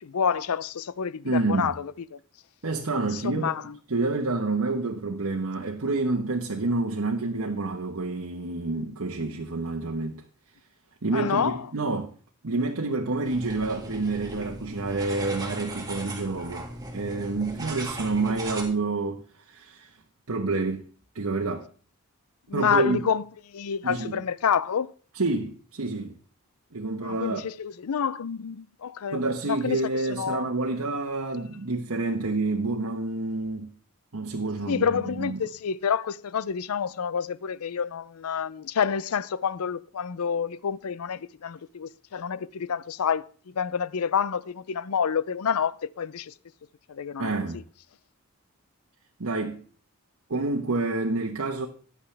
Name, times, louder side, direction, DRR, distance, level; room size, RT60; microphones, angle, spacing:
voice 1, 0.0-2.2 3.1-3.7 11.1-11.6 22.5-23.2 23.5-24.9 27.0-29.2 29.5-30.5 34.7-43.2 43.6-46.3 46.9-47.3, left 7 dB, 85° left, 0.5 m, -28 dB
voice 2, 1.2-1.7 2.6-3.5 3.9-10.2 11.0-12.1 12.4-16.7 16.9-19.9 20.3-20.9 21.1-21.7 22.5-23.0 23.8-24.2 25.1-26.1 26.7-27.4 29.1-33.7 34.1-35.4 47.2-47.6 49.2-49.6 50.3-51.7, right 3 dB, 75° right, 1.1 m, -28 dB
sound 1, 13.2-18.6, right 1 dB, 15° right, 1.9 m, -37 dB
14.5 x 9.8 x 3.3 m
head